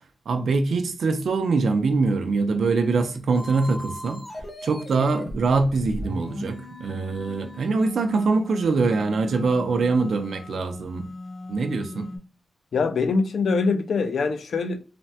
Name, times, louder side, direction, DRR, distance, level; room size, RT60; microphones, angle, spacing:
voice 1, 0.3-4.2 4.6-11.1 11.5-12.1, right 4 dB, 80° right, 0.5 m, -23 dB
sound 1, 3.3-12.2, left 1 dB, 20° left, 0.6 m, -38 dB
voice 2, 12.7-14.8, left 4 dB, 75° left, 0.4 m, -23 dB
3.3 x 2.1 x 2.7 m
wide cardioid pair, 130°, 0 cm